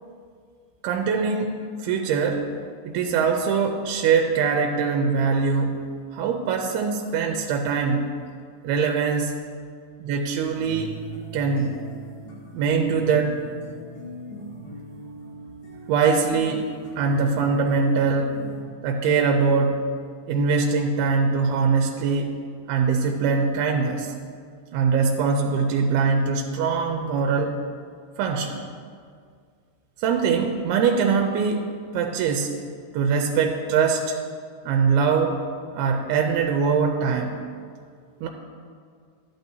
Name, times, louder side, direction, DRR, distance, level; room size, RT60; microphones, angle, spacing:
voice 1, 0.8-2.5 2.8-8.2 8.6-9.4 10.0-10.9 11.3-11.9 12.5-13.4 15.9-16.7 17.0-18.5 18.8-19.9 20.3-24.1 24.7-27.5 28.2-28.6 30.0-32.6 32.9-34.2 34.7-35.4 35.7-37.4 38.2-38.3, right 5 dB, 85° right, 3 dB, 2.6 m, -23 dB
sound 1, 10.6-18.6, equal, 90° left, 4.3 m, -40 dB
13.0 x 11.0 x 2.7 m, 2.1 s
omnidirectional pair, 4.5 m